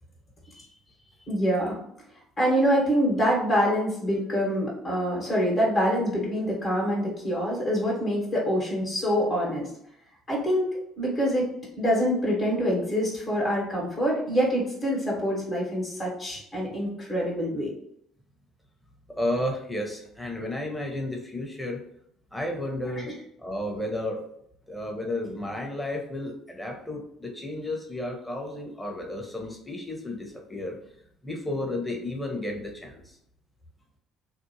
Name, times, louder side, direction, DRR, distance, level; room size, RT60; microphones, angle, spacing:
voice 1, 1.3-1.8 2.4-9.7 10.3-10.6 11.0-11.5 11.8-17.7, equal, 40° left, -4 dB, 1.3 m, -25 dB
voice 2, 19.1-21.8 22.3-23.1 23.4-24.2 24.7-30.8 31.2-33.2, left 1 dB, 10° left, 0 dB, 0.9 m, -32 dB
2.7 x 2.1 x 2.8 m, 0.72 s
hypercardioid pair, 55°, 0 cm